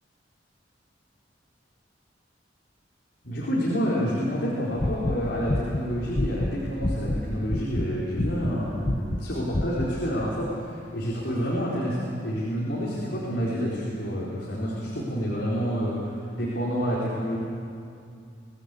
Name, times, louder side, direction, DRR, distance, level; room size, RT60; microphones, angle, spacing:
voice 1, 3.2-10.7 10.9-17.4, equal, 70° left, -6 dB, 4.3 m, -28 dB
sound 1, 4.8-7.2 7.5-7.9 8.1-8.6 8.8-9.2 9.5-9.9, left 1 dB, 35° left, 0.9 m, -27 dB
24.0 x 16.5 x 8.4 m, 2.4 s
head